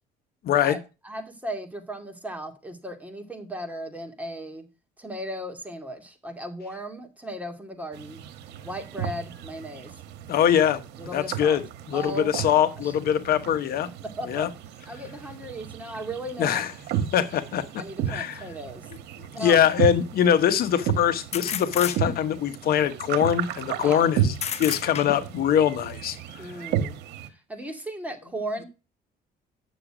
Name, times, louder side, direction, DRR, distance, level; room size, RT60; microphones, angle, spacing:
voice 1, 0.4-0.8 10.3-10.8 11.1-13.9 14.3-14.5 16.4-16.7 17.1-18.4 19.4-26.7, left 9 dB, 65° left, 11 dB, 1.0 m, -23 dB
voice 2, 1.0-4.6 5.0-8.2 8.6-9.9 11.0-11.6 11.9-12.6 12.8-12.9 14.0-14.5 14.9-16.6 17.8-18.9 19.3-19.6 23.8-24.0 26.4-27.0 27.3-28.7, right 1 dB, 10° right, 4 dB, 2.3 m, -36 dB
sound 1, 7.9-27.3, right 9 dB, 85° right, 1.2 m, -33 dB
sound 2, 18.9-19.0 21.3-22.4 24.3-25.4, left 7 dB, 40° left, 0.9 m, -31 dB
9.4 x 7.0 x 4.9 m, 0.30 s
cardioid pair, 110°, 17 cm